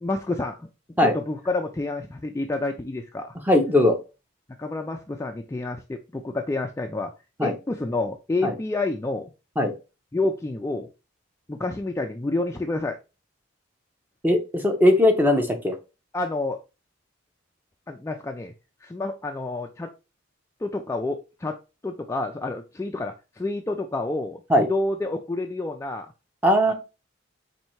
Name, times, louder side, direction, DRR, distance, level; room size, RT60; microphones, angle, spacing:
voice 1, 0.0-0.7 1.0-3.3 4.6-7.1 7.4-9.3 10.1-10.9 11.5-13.0 16.1-16.6 17.9-18.5 18.8-19.9 20.6-21.6 21.8-26.1 26.7-26.8, left 2 dB, 15° left, 4 dB, 0.3 m, -29 dB
voice 2, 3.5-4.0 7.4-7.5 8.4-8.5 9.6-9.7 14.2-15.7 24.5-24.7 26.4-26.7, left 1 dB, 10° right, 5 dB, 0.7 m, -19 dB
4.4 x 2.7 x 4.4 m, 0.29 s
head